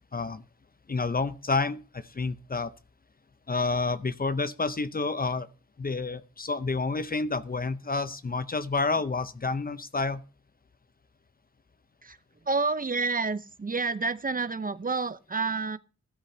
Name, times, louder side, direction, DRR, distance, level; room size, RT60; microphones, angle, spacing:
voice 1, 0.1-0.4 0.9-2.7 3.5-5.5 5.8-10.2, left 3 dB, 30° left, 0.7 m, -29 dB
voice 2, 12.4-15.8, right 4 dB, 30° right, 0.7 m, -29 dB
13.0 x 12.5 x 2.8 m
cardioid pair, 60°, 30 cm